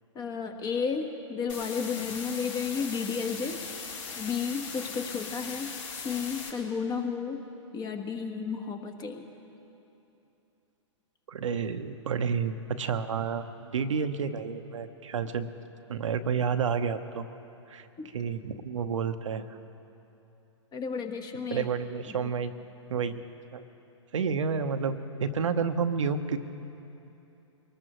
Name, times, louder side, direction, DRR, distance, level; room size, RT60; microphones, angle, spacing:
voice 1, 0.1-3.6 4.2-7.4 7.7-9.3 18.0-18.1 20.7-21.7 22.1-22.3, left 6 dB, 25° left, 5 dB, 1.4 m, -33 dB
sound 1, 1.5-6.5, left 5 dB, 75° left, 3.9 m, -39 dB
voice 2, 11.3-13.4 13.7-15.5 15.9-17.2 17.7-17.9 18.1-19.4 21.5-22.5 22.9-23.2 23.5-23.6 24.1-26.4, right 6 dB, 80° right, 8 dB, 0.9 m, -30 dB
24.0 x 19.5 x 3.1 m, 2.9 s
hypercardioid pair, 120°, 16 cm